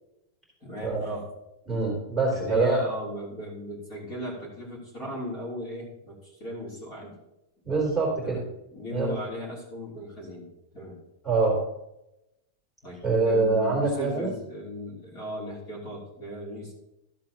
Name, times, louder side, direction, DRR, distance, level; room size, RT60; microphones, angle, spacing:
voice 1, 0.6-1.3 2.3-7.2 8.2-8.4 8.7-11.0 12.8-16.7, equal, 30° left, -4 dB, 3.0 m, -37 dB
voice 2, 1.7-2.8 7.6-8.4 8.9-9.1 11.2-11.6 13.0-14.3, right 3 dB, 5° left, -5 dB, 3.3 m, -24 dB
13.5 x 7.5 x 2.9 m, 0.89 s
supercardioid pair, 175°, 0 cm